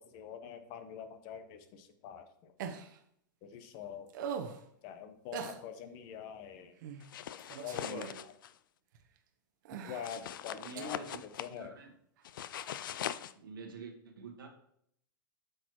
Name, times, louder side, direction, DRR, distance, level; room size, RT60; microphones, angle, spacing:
voice 1, 0.1-2.5 3.4-4.1 4.8-6.7 7.6-8.3 9.8-11.0 11.4-11.8, left 8 dB, 50° left, 9 dB, 1.0 m, -45 dB
sound 1, 2.6-3.0 4.1-4.6 5.3-5.6 6.8-7.0 7.4-8.2 8.9-9.0 9.6-10.2 10.8-10.9 12.6-12.7, right 7 dB, 65° right, 0.9 m, -41 dB
sound 2, 7.0-8.5 10.0-11.5 12.2-13.3, left 10 dB, 80° left, 0.4 m, -41 dB
voice 2, 10.5-11.2 11.5-11.9 13.3-14.5, right 4 dB, 90° right, 2 dB, 1.4 m, -47 dB
7.9 x 6.4 x 3.0 m, 0.71 s
hypercardioid pair, 115°, 11 cm